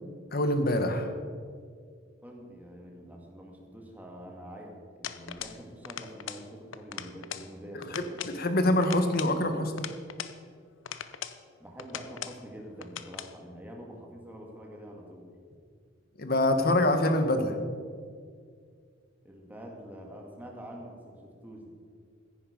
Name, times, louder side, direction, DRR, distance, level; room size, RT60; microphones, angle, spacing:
voice 1, 0.3-1.1 7.9-9.9 16.2-17.6, left 1 dB, 50° left, 7 dB, 1.3 m, -25 dB
voice 2, 2.2-8.2 11.6-15.3 19.2-21.7, equal, 10° right, 0 dB, 2.0 m, -46 dB
sound 1, 5.0-5.6 5.9-6.5 6.7-7.5 7.8-8.4 8.8-10.4 10.9-11.4 11.8-12.4 12.8-13.3, left 9 dB, 85° left, 0.7 m, -40 dB
15.0 x 10.0 x 5.2 m, 2.1 s
head